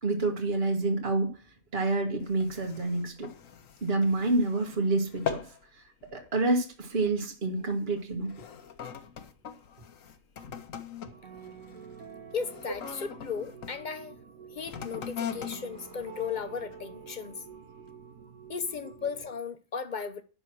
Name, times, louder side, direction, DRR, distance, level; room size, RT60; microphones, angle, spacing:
voice 1, 0.0-1.3 1.7-3.3 3.8-5.4 6.1-8.3, right 2 dB, 45° right, 1.8 m, -28 dB
sound 1, 2.2-4.8 5.1-5.6 6.0-6.3 7.0-7.2 8.0-13.8 14.6-16.9 17.5-17.6, left 8 dB, 75° left, 1.4 m, -41 dB
sound 2, 11.1-19.3, right 6 dB, 85° right, 1.6 m, -48 dB
voice 2, 12.3-14.1 14.5-17.3 18.5-20.2, left 6 dB, 40° left, 1.0 m, -36 dB
11.0 x 6.4 x 6.1 m
omnidirectional pair, 1.4 m